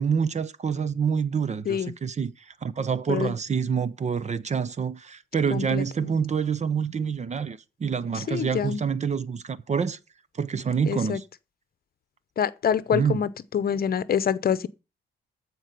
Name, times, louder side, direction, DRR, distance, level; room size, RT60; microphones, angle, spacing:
voice 1, 0.0-10.0 10.4-11.3 12.9-13.2, right 6 dB, 35° right, 0.8 m, -27 dB
voice 2, 5.5-6.2 8.3-8.8 10.9-11.2 12.4-13.3 13.5-14.7, left 8 dB, 50° left, 0.8 m, -26 dB
14.0 x 4.7 x 6.7 m
cardioid pair, 90°, 20 cm